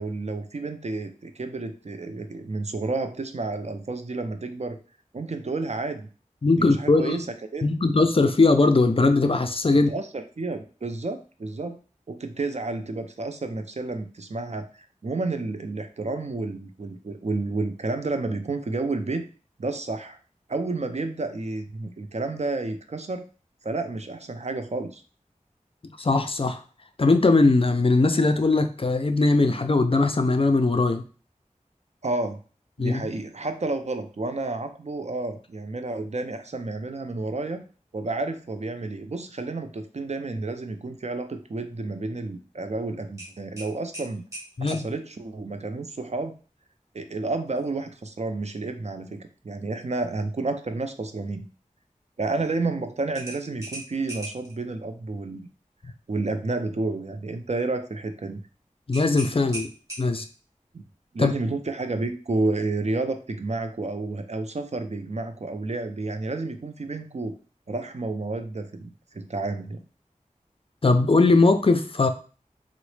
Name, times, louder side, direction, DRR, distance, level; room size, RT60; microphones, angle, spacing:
voice 1, 0.0-4.8 5.1-6.1 6.5-7.3 7.5-7.7 9.9-11.8 12.1-19.3 19.6-20.2 20.5-23.3 23.6-25.0 32.0-32.4 32.8-37.6 37.9-44.3 44.6-46.3 46.9-51.5 52.2-55.5 56.1-58.4 60.7-60.8 61.1-67.3 67.7-69.8, right 3 dB, 55° right, 7 dB, 0.4 m, -30 dB
voice 2, 6.4-7.2 7.6-9.9 26.0-26.6 27.0-31.0 32.8-33.1 44.6-44.9 58.9-59.7 60.0-60.2 61.2-61.3 70.8-72.1, left 3 dB, 45° left, 7 dB, 0.4 m, -20 dB
sound 1, 43.2-44.8 47.5-47.7 48.1-48.2 53.1-54.5 58.9-60.4, right 1 dB, 25° right, 1.3 m, -39 dB
3.8 x 2.0 x 3.2 m, 0.37 s
wide cardioid pair, 45°, 14 cm